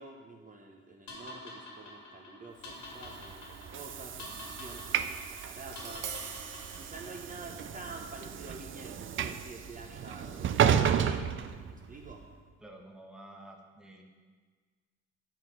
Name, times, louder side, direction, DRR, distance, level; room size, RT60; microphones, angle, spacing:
voice 1, 0.0-6.1 6.8-12.2, right 2 dB, 25° right, 0 dB, 0.8 m, -48 dB
sound 1, 1.1-7.3, left 2 dB, 70° left, 1.9 m, -48 dB
Train / Sliding door, 2.9-12.2, right 8 dB, 45° right, 0.4 m, -33 dB
Tap, 5.6-11.7, right 6 dB, 80° right, 0.9 m, -48 dB
voice 2, 12.6-14.0, right 1 dB, ahead, 1 dB, 1.0 m, -50 dB
7.2 x 4.2 x 5.9 m, 1.5 s
cardioid pair, 90°, 30 cm